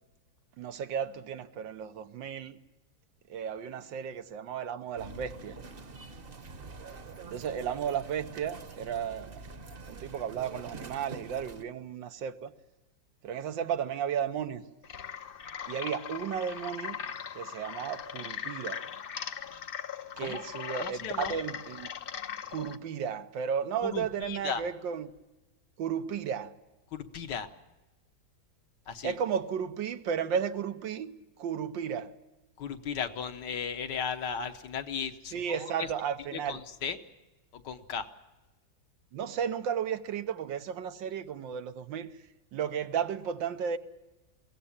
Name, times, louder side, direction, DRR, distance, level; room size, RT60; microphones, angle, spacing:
voice 1, 0.6-2.6 3.3-5.6 7.3-9.4 9.9-12.5 13.2-14.6 15.7-17.0 17.4-18.8 20.2-21.9 22.5-25.1 25.8-26.5 29.0-31.1 31.4-32.1 35.3-36.6 39.1-42.1 42.5-43.8, right 8 dB, 90° right, 1.7 m, -34 dB
sound 1, 5.0-11.6, right 4 dB, 40° right, 1.0 m, -46 dB
sound 2, 14.8-22.8, left 7 dB, 50° left, 0.6 m, -39 dB
voice 2, 20.8-21.4 23.8-24.7 26.9-27.5 28.9-29.2 32.6-35.9 36.3-37.0 37.5-38.1, left 7 dB, 70° left, 1.7 m, -36 dB
22.0 x 17.0 x 8.7 m
omnidirectional pair, 2.0 m